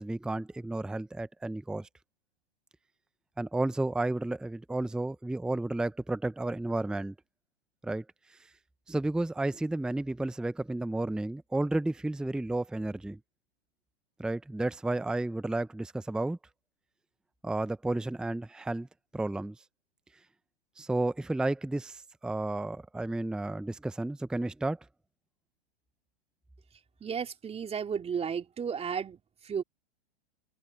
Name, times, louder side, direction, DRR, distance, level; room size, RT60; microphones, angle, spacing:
voice 1, 0.0-1.9 3.4-7.1 7.8-8.0 8.9-13.2 14.2-16.4 17.4-18.9 19.1-19.6 20.8-24.8, right 2 dB, ahead, 0.7 m, -32 dB
voice 2, 27.0-29.6, right 7 dB, 20° right, 3.4 m, -34 dB
hypercardioid pair, 115°, 32 cm